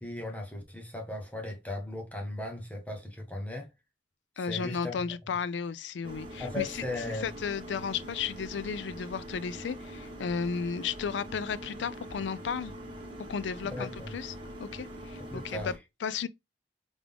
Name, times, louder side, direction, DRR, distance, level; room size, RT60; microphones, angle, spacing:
voice 1, 0.0-3.7 4.4-5.0 6.4-7.3 13.6-14.1 15.3-15.7, left 2 dB, 10° left, 1.0 m, -37 dB
voice 2, 4.4-6.7 7.1-12.7 13.3-15.7 16.0-16.3, left 6 dB, 80° left, 0.4 m, -34 dB
sound 1, 6.0-15.8, equal, 30° right, 1.3 m, -43 dB
3.6 x 3.5 x 3.4 m
head